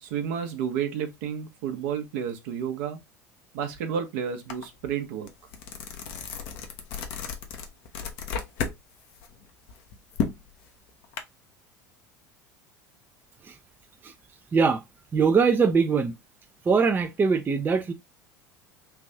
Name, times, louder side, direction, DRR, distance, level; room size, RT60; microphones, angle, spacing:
voice 1, 0.0-3.0 3.5-5.3, right 8 dB, 65° right, 0.9 m, -31 dB
sound 1, 4.5-4.6 5.0-8.8 9.1-11.2, left 6 dB, 60° left, 0.8 m, -33 dB
voice 2, 14.5-14.8 15.1-16.2 16.6-17.9, right 5 dB, 20° right, 0.5 m, -22 dB
3.4 x 2.5 x 3.3 m
hypercardioid pair, 75°, 9 cm